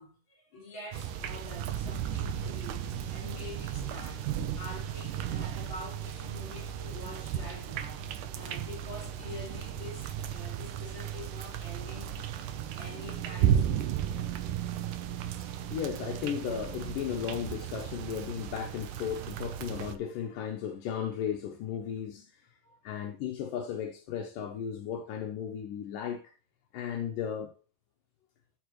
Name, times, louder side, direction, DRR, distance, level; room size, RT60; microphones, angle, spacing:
voice 1, 0.0-12.1 12.5-14.1 22.6-22.8, left 2 dB, 35° left, 6.1 m, -46 dB
sound 1, 0.9-20.0, right 10 dB, 75° right, 2.3 m, -34 dB
voice 2, 15.5-22.4 22.8-26.3 26.7-27.5, left 8 dB, 75° left, 2.6 m, -35 dB
13.0 x 7.2 x 3.2 m
omnidirectional pair, 3.9 m